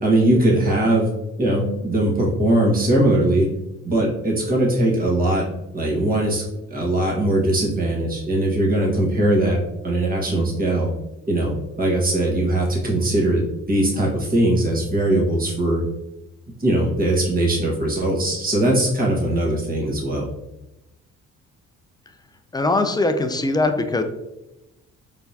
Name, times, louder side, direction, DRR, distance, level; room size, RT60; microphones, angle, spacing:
voice 1, 0.0-1.1 1.4-3.5 3.8-5.4 5.7-9.6 9.8-10.9 11.3-15.9 16.6-20.3, right 1 dB, 30° right, -2 dB, 1.4 m, -20 dB
voice 2, 22.5-24.0, left 2 dB, 15° left, 7 dB, 0.4 m, -21 dB
4.3 x 3.4 x 2.8 m, 0.94 s
cardioid pair, 90°, 30 cm